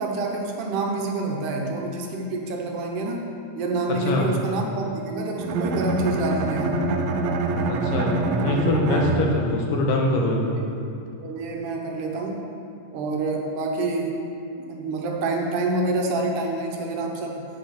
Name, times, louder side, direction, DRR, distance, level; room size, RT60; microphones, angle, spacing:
voice 1, 0.0-6.9 8.4-8.6 9.0-9.3 10.5-10.7 11.2-12.5 12.9-14.2 14.6-17.5, right 2 dB, 75° right, 1 dB, 2.5 m, -27 dB
voice 2, 3.9-4.3 7.7-10.6, left 1 dB, 80° left, 0 dB, 2.8 m, -23 dB
Bowed string instrument, 5.4-9.7, right 2 dB, 90° right, 2.4 m, -25 dB
8.9 x 8.5 x 5.9 m, 2.6 s
omnidirectional pair, 3.9 m